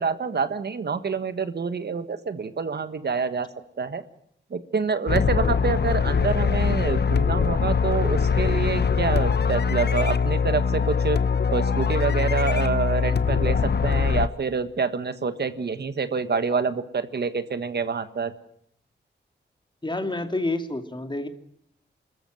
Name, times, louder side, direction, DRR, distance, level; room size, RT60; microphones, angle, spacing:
voice 1, 0.0-3.5 3.8-4.0 4.5-11.2 11.5-18.3, right 5 dB, 60° right, 11 dB, 1.5 m, -27 dB
sound 1, 5.1-14.3, left 6 dB, 60° left, 1.0 m, -22 dB
voice 2, 19.8-21.3, left 2 dB, 25° left, 7 dB, 2.5 m, -28 dB
25.5 x 14.0 x 9.2 m, 0.70 s
wide cardioid pair, 80°, 19 cm